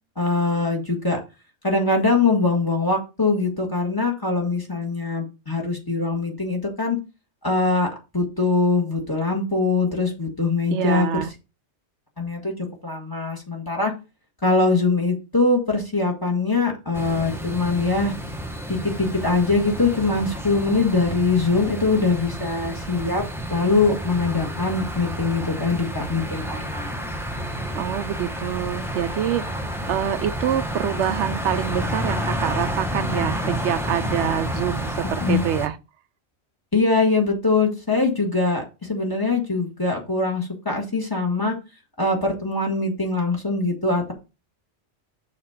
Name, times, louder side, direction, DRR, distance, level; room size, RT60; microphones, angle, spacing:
voice 1, 0.2-1.2 1.6-7.0 7.4-11.1 12.2-12.5 12.8-13.9 14.4-18.1 18.7-23.2 23.5-27.1 35.2-35.4 36.7-41.5 42.0-44.1, left 3 dB, 20° left, 2.0 m, -22 dB
voice 2, 10.7-11.3 27.7-35.8, right 10 dB, 80° right, 0.9 m, -26 dB
sound 1, 16.9-35.7, equal, ahead, 0.8 m, -30 dB
6.6 x 4.2 x 5.9 m
omnidirectional pair, 1.2 m